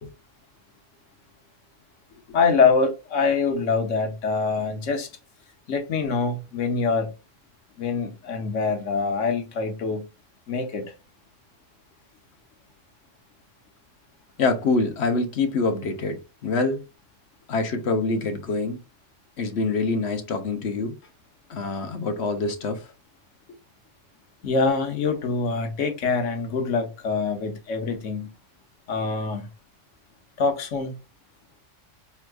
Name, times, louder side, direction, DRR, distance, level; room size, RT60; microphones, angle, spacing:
voice 1, 2.3-5.1 5.7-7.1 7.8-10.1 10.5-10.8 24.4-28.3 28.9-29.5 30.4-30.9, left 4 dB, 80° left, 1.3 m, -24 dB
voice 2, 14.4-16.8 17.5-18.8 19.4-21.0 21.5-22.9, left 3 dB, 60° left, 1.0 m, -25 dB
4.6 x 3.5 x 2.3 m
omnidirectional pair, 1.3 m